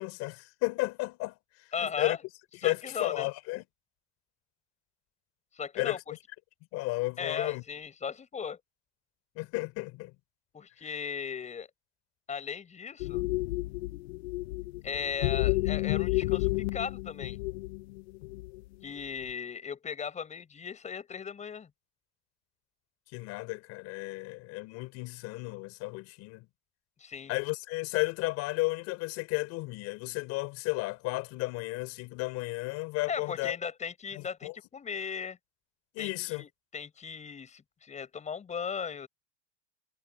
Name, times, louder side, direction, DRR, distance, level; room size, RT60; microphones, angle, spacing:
voice 1, 0.0-1.4 1.8-2.2 2.6-3.6 5.7-6.0 6.7-7.6 9.4-10.1 23.1-26.5 27.3-33.6 34.2-34.5 35.9-36.4, left 22 dB, 50° left, 4.3 m, -33 dB
voice 2, 1.7-2.2 2.6-3.3 5.5-6.2 7.2-8.6 10.5-11.7 12.3-13.2 14.8-17.4 18.8-21.7 27.0-27.3 33.1-35.4 36.0-39.1, left 6 dB, 20° left, 7.3 m, -37 dB
sound 1, 13.0-18.7 19.0-19.3, left 20 dB, 75° left, 1.0 m, -31 dB
supercardioid pair, 130°, 32 cm